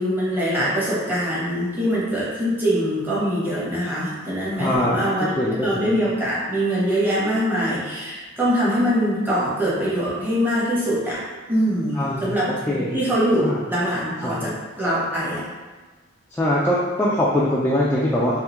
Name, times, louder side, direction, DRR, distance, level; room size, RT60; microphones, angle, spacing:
voice 1, 0.0-5.3 5.6-11.2 11.5-12.5 12.9-15.4, equal, 10° right, -8 dB, 0.9 m, -23 dB
voice 2, 4.6-6.0 11.9-12.3 12.7-13.0 13.4-13.6 14.2-14.5 16.3-18.4, left 1 dB, 10° left, -7 dB, 0.3 m, -22 dB
3.5 x 3.1 x 3.0 m, 1.3 s
head